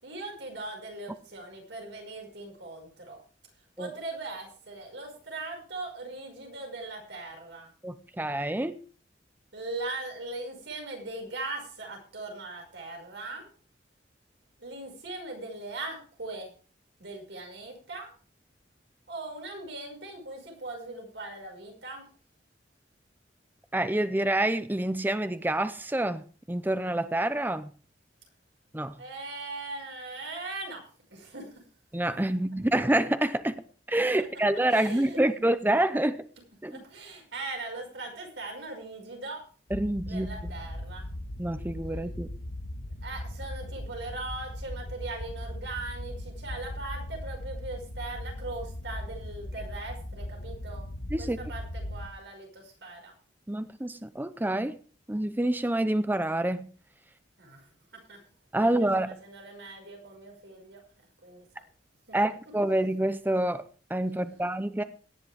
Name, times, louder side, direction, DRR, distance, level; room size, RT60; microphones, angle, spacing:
voice 1, 0.0-3.2 3.8-7.7 9.5-13.5 14.6-16.5 17.0-18.1 19.1-22.1 29.0-31.6 34.7-35.5 36.7-39.5 40.1-41.1 43.0-50.9 51.2-53.1 57.4-57.7 57.9-58.3 58.6-60.8 61.2-61.5 62.1-62.3 64.1-64.5, right 2 dB, 90° right, 5.7 m, -40 dB
voice 2, 7.8-8.8 23.7-27.7 28.7-29.0 31.9-33.6 33.9-36.2 36.6-36.8 39.7-40.5 41.4-42.3 51.1-51.4 53.5-54.8 55.1-56.7 58.5-59.1 62.1-63.6 63.9-64.8, right 1 dB, 10° right, 0.6 m, -27 dB
sound 1, 39.7-52.1, left 1 dB, 85° left, 1.5 m, -38 dB
17.5 x 10.5 x 3.5 m
head